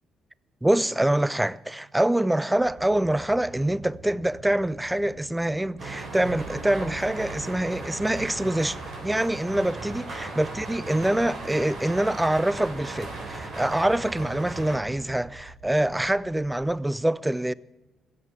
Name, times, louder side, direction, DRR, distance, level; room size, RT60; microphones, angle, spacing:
voice 1, 0.6-8.8 9.0-17.5, right 1 dB, 10° right, 0.4 m, -25 dB
sound 1, 2.6-16.5, right 3 dB, 90° right, 3.4 m, -47 dB
sound 2, 5.8-14.8, right 3 dB, 60° right, 3.9 m, -37 dB
16.5 x 7.6 x 8.0 m
cardioid pair, 90°, 0 cm